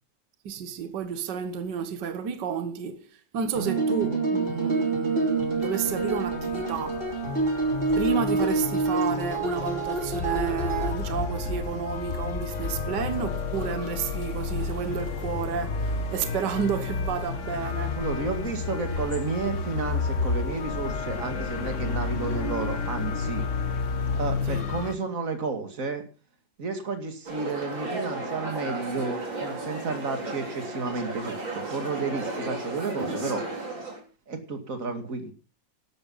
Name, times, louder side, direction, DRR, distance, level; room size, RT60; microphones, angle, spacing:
voice 1, 0.4-7.0 8.0-18.0 24.5-24.7, right 7 dB, 65° right, 1.8 m, -31 dB
sound 1, 3.5-10.9, right 3 dB, 30° right, 3.1 m, -27 dB
sound 2, 5.3-24.9, left 4 dB, 45° left, 1.5 m, -31 dB
voice 2, 18.0-23.4 24.1-26.0 26.6-33.4 34.3-35.3, right 4 dB, 45° right, 2.6 m, -32 dB
sound 3, 27.3-34.0, right 2 dB, 85° right, 4.7 m, -34 dB
12.0 x 11.5 x 5.5 m
omnidirectional pair, 2.0 m